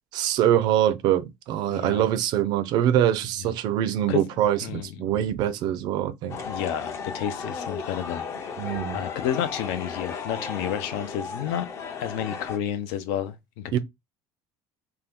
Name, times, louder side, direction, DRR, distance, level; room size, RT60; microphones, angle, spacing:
voice 1, 0.1-6.4 8.6-9.0 13.7-13.8, right 11 dB, 50° right, 0.4 m, -24 dB
voice 2, 1.7-2.1 4.1-4.2 4.6-5.0 6.4-8.2 8.9-11.7 12.0-13.8, left 10 dB, 80° left, 0.6 m, -30 dB
sound 1, 6.3-12.6, left 5 dB, 30° left, 0.5 m, -35 dB
2.7 x 2.3 x 3.5 m
cardioid pair, 165°, 9 cm